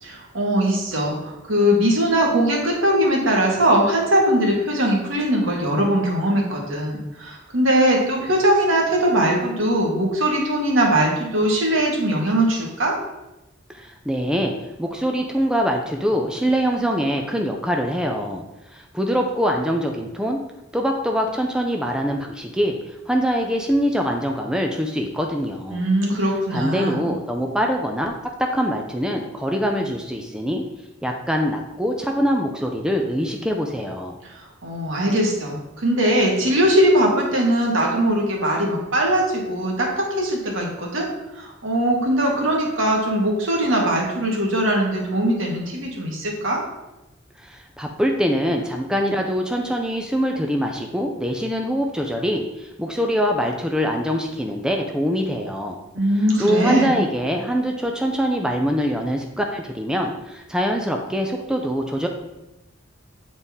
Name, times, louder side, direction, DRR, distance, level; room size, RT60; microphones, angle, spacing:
voice 1, 0.0-12.9 25.7-27.1 34.3-41.1 41.3-46.6 55.9-57.0, right 1 dB, 75° right, -1 dB, 1.7 m, -20 dB
voice 2, 13.7-14.5 14.8-18.4 18.7-20.4 20.7-22.8 23.1-25.9 26.5-30.6 31.0-34.2 47.4-55.8 56.4-62.1, equal, 5° right, 2 dB, 0.4 m, -23 dB
8.8 x 4.1 x 3.6 m, 0.96 s
head